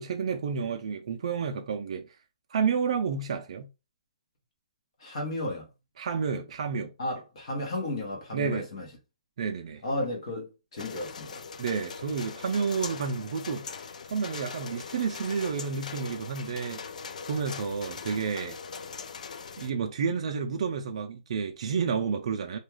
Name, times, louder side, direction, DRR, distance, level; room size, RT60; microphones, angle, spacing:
voice 1, 0.0-2.1 2.5-3.7 6.0-6.9 8.3-8.7 9.4-9.8 11.6-16.8 17.3-18.6 19.6-22.6, right 6 dB, 50° right, 0.4 m, -30 dB
voice 2, 5.0-5.7 7.0-8.9 9.8-11.4, left 2 dB, 50° left, 0.9 m, -33 dB
sound 1, 10.8-19.7, left 5 dB, 70° left, 0.3 m, -41 dB
2.3 x 2.3 x 3.0 m
hypercardioid pair, 165°, 4 cm